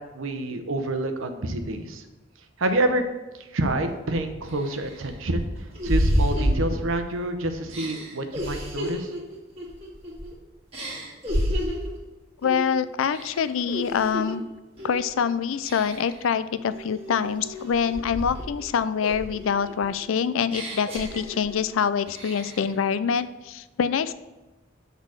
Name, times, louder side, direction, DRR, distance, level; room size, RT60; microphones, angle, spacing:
voice 1, 0.1-2.0 2.6-3.0 3.5-5.5 5.8-9.1, right 1 dB, 85° right, 7 dB, 0.8 m, -27 dB
sound 1, 3.8-3.9 4.5-7.2 7.7-10.3 10.7-12.0 12.4-12.7 13.1-14.4 14.8-15.1 15.6-16.2 16.7-18.6 19.0-21.7 22.1-22.7, equal, 30° right, 1.7 m, -30 dB
voice 2, 12.4-14.4 14.8-24.1, left 7 dB, 85° left, 14 dB, 0.4 m, -25 dB
6.3 x 4.0 x 6.3 m, 1.1 s
head